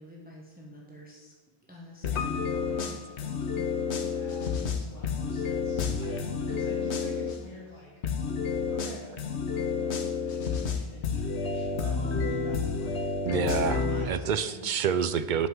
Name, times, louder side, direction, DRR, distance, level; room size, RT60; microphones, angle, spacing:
voice 1, 0.0-1.3 1.7-3.6, equal, 10° right, -2 dB, 1.3 m, -48 dB
sound 1, 2.0-7.4 8.0-14.0, left 5 dB, 85° left, 1.2 m, -30 dB
Piano, 2.2-4.2 4.5-4.6, left 6 dB, 60° left, 0.7 m, -40 dB
voice 2, 4.1-7.9 8.7-13.0 13.9-14.8, equal, 35° left, -8 dB, 2.3 m, -47 dB
voice 3, 13.2-15.5, right 7 dB, 55° right, 12 dB, 0.6 m, -28 dB
8.3 x 5.7 x 7.5 m, 1.2 s
omnidirectional pair, 1.1 m